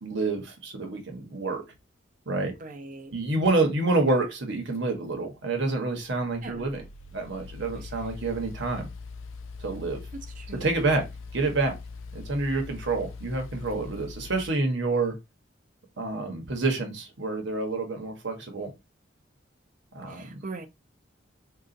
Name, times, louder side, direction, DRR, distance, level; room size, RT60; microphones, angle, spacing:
voice 1, 0.0-1.6 2.3-2.5 3.1-6.8 7.1-8.9 9.6-10.0 10.6-11.0 11.3-11.7 12.1-15.2 16.0-18.7 19.9-20.4, right 3 dB, 65° right, 1.0 m, -28 dB
voice 2, 2.6-3.1 6.4-6.7 10.1-10.7 20.1-20.7, right 3 dB, 45° right, 0.5 m, -41 dB
sound 1, 4.7-14.5, left 4 dB, 80° left, 0.4 m, -42 dB
3.9 x 2.4 x 2.5 m
head